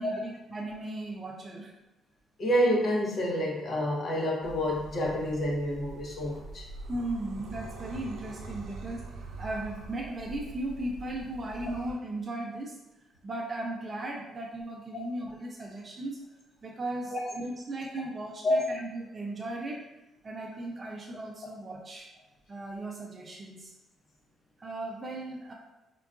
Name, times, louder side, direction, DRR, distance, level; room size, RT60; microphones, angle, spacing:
voice 1, 0.0-1.7 6.9-12.8 13.2-16.3 16.6-19.9 20.2-22.1 22.5-23.7 24.6-25.5, right 2 dB, 35° right, -1 dB, 0.4 m, -37 dB
voice 2, 2.4-6.7 14.9-15.0 17.1-17.2 18.4-18.6, equal, 50° left, -2 dB, 0.8 m, -28 dB
sound 1, 4.4-11.9, right 2 dB, 85° right, 0.6 m, -44 dB
3.7 x 2.4 x 2.3 m, 0.97 s
cardioid pair, 90°, 0 cm